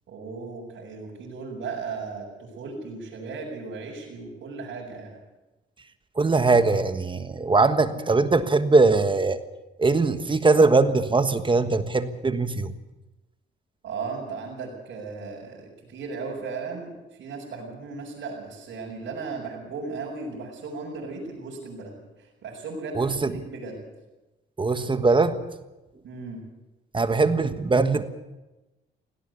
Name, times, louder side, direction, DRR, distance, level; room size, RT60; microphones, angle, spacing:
voice 1, 0.1-5.2 13.8-16.9 17.2-21.9 22.2-23.8 26.0-26.4, right 4 dB, 65° right, -5 dB, 6.3 m, -36 dB
voice 2, 6.2-9.4 9.8-12.7 22.9-23.4 24.6-25.4 26.9-28.1, right 3 dB, 25° right, 11 dB, 1.4 m, -21 dB
18.0 x 17.5 x 8.2 m, 1.0 s
cardioid pair, 90°, 20 cm